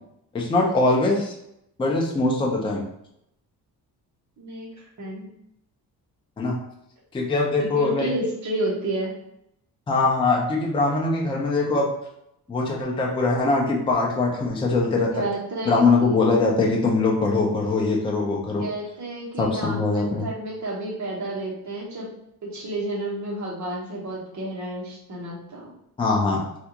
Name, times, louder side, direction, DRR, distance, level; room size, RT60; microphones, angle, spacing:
voice 1, 0.3-1.3 1.8-2.8 6.4-6.6 7.1-8.1 9.9-11.9 12.5-15.1 15.7-18.6 19.4-20.3 26.0-26.4, left 3 dB, 15° left, -2 dB, 0.4 m, -22 dB
voice 2, 4.4-4.7 5.0-5.3 7.6-9.1 15.1-16.1 18.6-22.1 22.4-25.7, right 1 dB, 45° right, -3 dB, 1.1 m, -30 dB
3.4 x 2.4 x 2.8 m, 0.79 s
cardioid pair, 155°, 40 cm